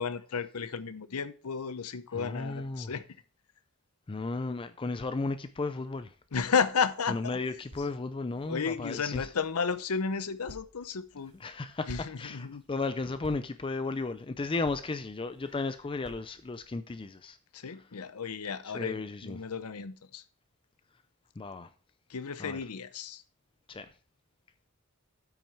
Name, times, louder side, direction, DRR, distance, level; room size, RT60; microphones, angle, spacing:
voice 1, 0.0-3.0 6.3-7.4 8.5-11.3 11.9-12.6 17.5-20.2 22.1-23.2, left 5 dB, 80° left, 0.7 m, -33 dB
voice 2, 2.1-2.9 4.1-6.1 7.1-9.3 11.3-17.4 18.6-19.4 21.4-21.7 22.4-22.6 23.7-23.9, left 3 dB, 25° left, 0.4 m, -34 dB
sound 1, 5.8-16.7, equal, 75° right, 1.9 m, -55 dB
8.7 x 6.2 x 4.5 m
head